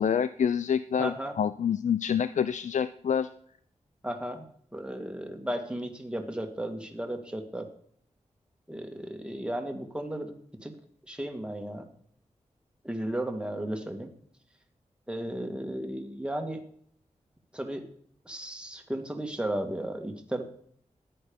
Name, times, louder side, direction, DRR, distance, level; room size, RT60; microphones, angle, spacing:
voice 1, 0.0-3.3, left 7 dB, 80° left, 14 dB, 0.4 m, -27 dB
voice 2, 1.0-1.4 4.0-4.5 4.7-7.7 8.7-10.3 10.6-10.7 11.1-11.9 12.8-14.1 15.1-16.6 17.5-17.9 18.3-20.4, right 1 dB, 10° right, 4 dB, 2.0 m, -34 dB
13.5 x 10.0 x 5.4 m, 0.62 s
wide cardioid pair, 100°, 12 cm